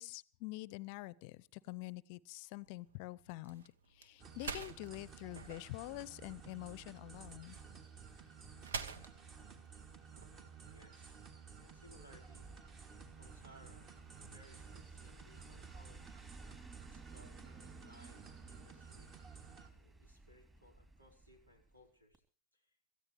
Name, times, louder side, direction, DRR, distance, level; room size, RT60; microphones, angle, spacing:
voice 1, 0.0-3.6 3.9-7.6, left 19 dB, 45° left, 0.7 m, -46 dB
sound 1, 2.6-10.8, right 5 dB, 65° right, 1.3 m, -49 dB
sound 2, 4.2-19.7, right 6 dB, 30° right, 2.8 m, -54 dB
voice 2, 10.2-11.2 11.6-12.5 13.1-14.0 14.2-16.3 16.8-19.1 19.7-22.2 22.5-22.8, left 1 dB, 85° right, 4.5 m, -63 dB
sound 3, 11.6-21.9 22.1-22.2, right 3 dB, 15° right, 3.1 m, -58 dB
26.0 x 14.5 x 3.2 m
figure-of-eight pair, 90°, 0 cm